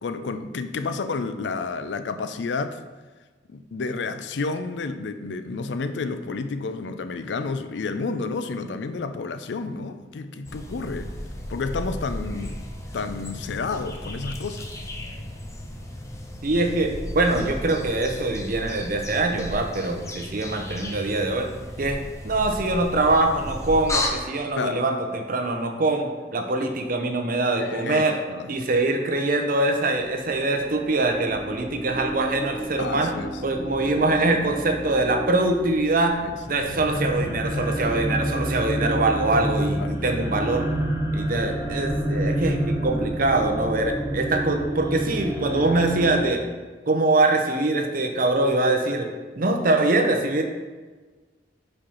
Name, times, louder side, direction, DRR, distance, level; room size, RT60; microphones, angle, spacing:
voice 1, 0.0-2.8 3.5-11.1 11.5-12.6 12.9-14.7 24.5-24.9 27.6-28.7 32.8-33.4 36.2-36.6 39.8-40.2, left 4 dB, 85° left, 10 dB, 0.4 m, -31 dB
sound 1, 10.4-24.1, left 1 dB, 15° left, 0.7 m, -34 dB
voice 2, 16.4-21.5 21.8-28.2 28.5-33.1 33.4-36.2 36.5-40.7 41.1-46.4 46.9-49.1 49.4-50.4, right 2 dB, 50° right, 5 dB, 0.7 m, -23 dB
sound 2, 30.0-46.2, right 1 dB, 15° right, 0.8 m, -29 dB
5.2 x 4.3 x 5.5 m, 1.3 s
head